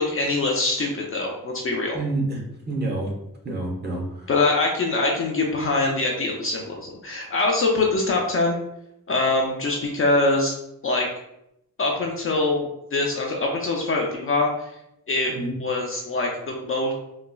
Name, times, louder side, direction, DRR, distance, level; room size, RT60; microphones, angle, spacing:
voice 1, 0.0-2.0 4.3-8.6 9.1-10.5 10.8-11.1 11.8-14.7 15.1-16.9, left 2 dB, 40° left, 0 dB, 0.4 m, -23 dB
voice 2, 1.9-3.1 3.4-4.3 15.3-15.6, right 2 dB, 30° right, -1 dB, 0.8 m, -28 dB
3.9 x 2.2 x 2.2 m, 0.81 s
wide cardioid pair, 130°, 36 cm